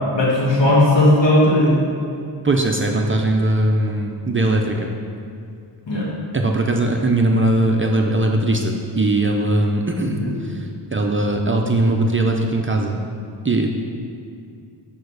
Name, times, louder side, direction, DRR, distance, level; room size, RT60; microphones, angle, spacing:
voice 1, 0.1-1.8 5.9-6.1 9.9-10.3, left 1 dB, 70° left, -5 dB, 2.2 m, -16 dB
voice 2, 2.4-4.9 6.3-10.7 10.9-13.0 13.4-13.7, right 2 dB, 30° right, 1 dB, 0.5 m, -20 dB
6.7 x 5.5 x 6.4 m, 2.4 s
wide cardioid pair, 130°, 45 cm